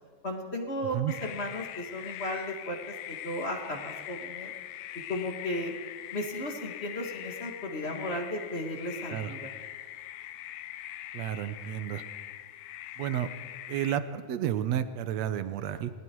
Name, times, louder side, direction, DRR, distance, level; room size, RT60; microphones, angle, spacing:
voice 1, 0.2-4.5 5.1-5.7 6.1-9.5, left 1 dB, 25° left, 2 dB, 1.6 m, -35 dB
sound 1, 1.1-14.0, left 12 dB, 90° left, 2.6 m, -42 dB
voice 2, 11.1-12.0 13.0-13.3 13.7-15.9, right 10 dB, 70° right, 12 dB, 1.7 m, -31 dB
29.5 x 20.0 x 4.7 m, 1.5 s
omnidirectional pair, 3.9 m